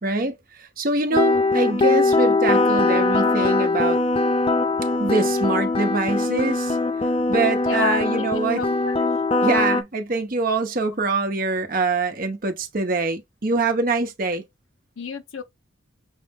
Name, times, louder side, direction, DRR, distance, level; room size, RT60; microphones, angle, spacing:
voice 1, 0.0-4.0 5.0-6.8 7.3-8.7 9.4-14.4, right 3 dB, 45° right, 0.8 m, -24 dB
sound 1, 1.1-9.8, left 3 dB, 25° left, 0.4 m, -21 dB
voice 2, 7.6-8.3 8.6-8.9 15.0-15.4, left 8 dB, 85° left, 0.8 m, -30 dB
6.2 x 2.1 x 3.5 m
head